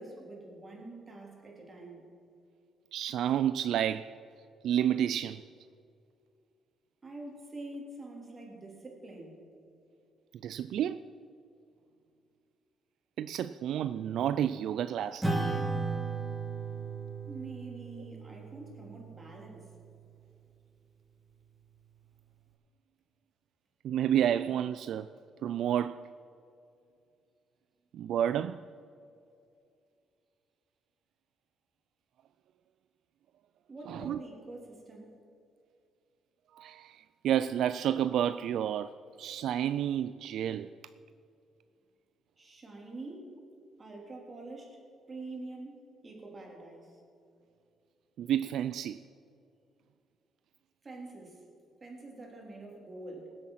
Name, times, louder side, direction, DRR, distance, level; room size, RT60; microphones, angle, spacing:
voice 1, 0.0-2.1 7.0-9.4 17.3-19.7 33.7-35.1 42.4-43.3 43.8-44.8 45.1-47.0 50.8-51.4 51.8-53.3, right 2 dB, 30° right, -1 dB, 3.7 m, -45 dB
voice 2, 2.9-4.1 4.6-5.4 10.4-11.0 13.2-15.3 23.8-25.1 25.4-26.0 27.9-28.6 33.9-34.2 36.5-38.9 39.2-40.7 48.2-49.0, right 10 dB, 75° right, 13 dB, 0.3 m, -30 dB
Acoustic guitar / Strum, 15.2-20.0, right 3 dB, 10° right, 2.5 m, -36 dB
18.5 x 8.1 x 5.8 m, 2.4 s
cardioid pair, 90°, 0 cm